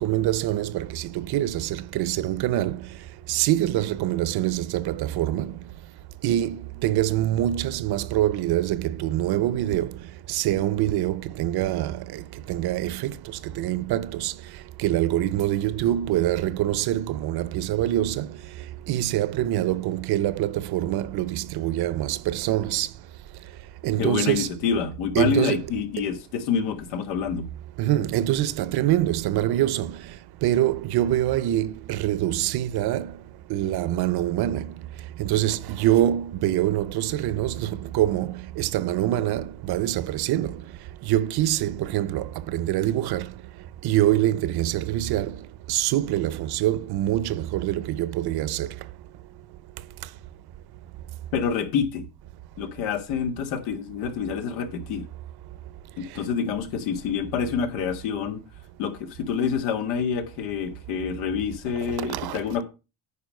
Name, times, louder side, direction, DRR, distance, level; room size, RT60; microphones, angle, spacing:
voice 1, 0.0-5.7 6.2-22.9 23.8-24.5 25.2-25.6 27.8-33.2 33.5-40.6 41.0-43.4 43.8-48.9 50.0-50.1 56.1-56.2 62.0-62.4, right 13 dB, 60° right, 0.8 m, -25 dB
voice 2, 24.0-27.5 51.3-52.1 52.6-55.0 56.0-58.4 58.8-62.6, left 7 dB, 90° left, 2.1 m, -27 dB
9.6 x 5.0 x 6.4 m
cardioid pair, 115°, 44 cm